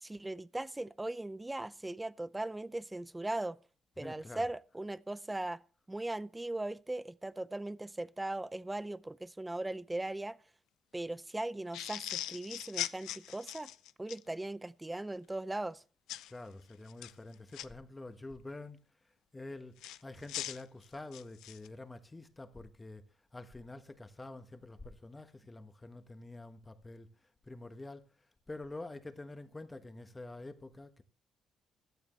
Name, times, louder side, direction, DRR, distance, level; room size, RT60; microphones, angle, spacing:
voice 1, 0.0-3.6 4.0-5.6 5.9-10.4 10.9-13.7 14.0-15.8, right 2 dB, 15° right, 0.6 m, -39 dB
voice 2, 4.0-4.6 16.3-18.8 19.3-23.0 23.3-31.0, left 2 dB, 20° left, 1.4 m, -47 dB
sound 1, 11.7-14.2 16.1-16.3 16.9-17.7 19.8-21.7, left 13 dB, 90° left, 0.5 m, -40 dB
16.5 x 12.0 x 3.3 m
cardioid pair, 90°, 0 cm